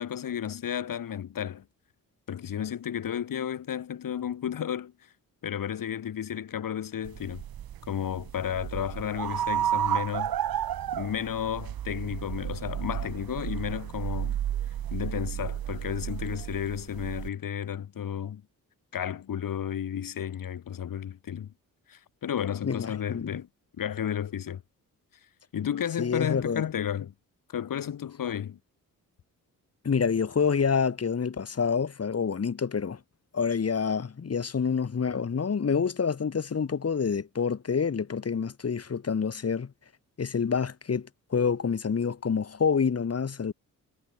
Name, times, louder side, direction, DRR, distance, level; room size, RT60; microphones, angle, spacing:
voice 1, 0.0-1.6 2.3-4.9 5.4-7.4 7.9-10.3 10.9-14.4 14.9-18.4 18.9-21.5 21.9-23.5 23.8-24.6 25.5-27.1 27.5-28.6, left 9 dB, 70° left, 3.7 m, -32 dB
sound 1, 7.0-17.3, right 11 dB, 90° right, 2.0 m, -32 dB
voice 2, 22.6-23.4 26.0-26.6 29.8-33.0 33.3-39.7 40.2-43.5, left 6 dB, 45° left, 7.3 m, -27 dB
wide cardioid pair, 135°, 35 cm